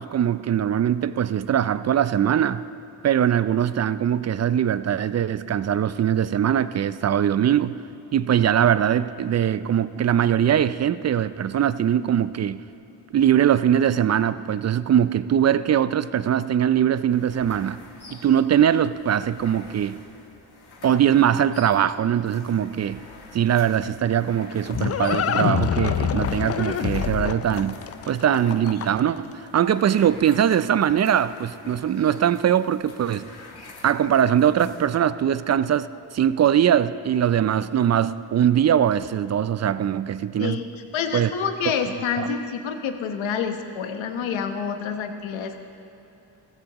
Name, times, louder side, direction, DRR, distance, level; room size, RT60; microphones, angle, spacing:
voice 1, 0.0-2.6 3.0-7.8 8.1-12.6 13.1-17.8 18.1-20.0 20.8-23.0 23.3-27.8 28.1-33.3 33.8-40.6 41.1-41.3 42.2-42.3, right 9 dB, 35° right, 15 dB, 0.4 m, -21 dB
sound 1, 17.1-35.0, left 3 dB, 55° left, 1.9 m, -47 dB
Livestock farm animals working animals, 24.1-29.2, left 8 dB, 30° left, 0.4 m, -26 dB
voice 2, 40.4-45.6, left 6 dB, 75° left, 7 dB, 1.2 m, -28 dB
15.5 x 14.5 x 3.0 m, 3.0 s
supercardioid pair, 60°, 47 cm